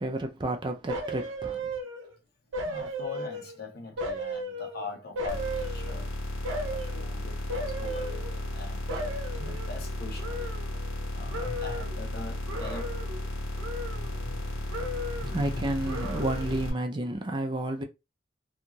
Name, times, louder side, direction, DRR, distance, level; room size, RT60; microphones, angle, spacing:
voice 1, 0.0-1.7 15.3-17.8, right 1 dB, 25° right, 0.4 m, -31 dB
sound 1, 0.9-2.2 2.5-3.6 4.0-6.1 6.4-7.0 7.5-8.6 8.9-11.0 11.3-12.0 12.5-13.3 13.6-14.4 14.7-15.4 15.9-16.7 17.0-17.1, right 1 dB, 80° right, 0.6 m, -36 dB
voice 2, 2.5-6.1 6.5-10.6 11.1-16.9, left 3 dB, 50° left, 0.7 m, -43 dB
sound 2, 5.3-16.7, left 1 dB, 70° left, 1.3 m, -34 dB
2.6 x 2.4 x 2.9 m
head